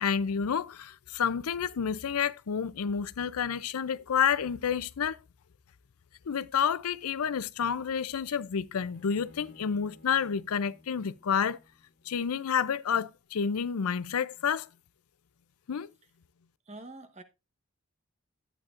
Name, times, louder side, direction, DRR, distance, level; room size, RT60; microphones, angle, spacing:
voice 1, 0.0-5.2 6.3-11.6 12.1-14.7 15.7-15.9, left 7 dB, 90° left, 0.5 m, -29 dB
Bowed string instrument, 8.9-12.2, left 2 dB, 50° left, 1.5 m, -56 dB
voice 2, 16.6-17.2, right 2 dB, 30° right, 1.0 m, -45 dB
11.5 x 9.0 x 2.5 m
head